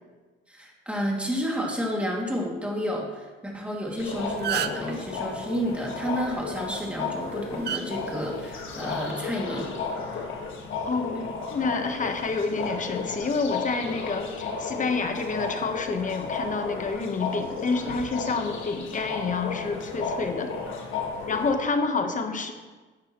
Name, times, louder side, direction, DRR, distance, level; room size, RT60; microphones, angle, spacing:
voice 1, 0.5-9.7, equal, 5° right, -2 dB, 2.2 m, -30 dB
sound 1, 3.9-4.0 4.3-4.9 6.6-6.8 7.6-7.8 8.9-9.1, right 10 dB, 55° right, 0.5 m, -29 dB
sound 2, 4.0-21.5, left 4 dB, 80° left, 1.5 m, -34 dB
voice 2, 10.9-20.5 21.3-22.5, left 4 dB, 40° left, 6 dB, 1.1 m, -28 dB
11.0 x 8.5 x 3.0 m, 1.3 s
cardioid pair, 90°, 20 cm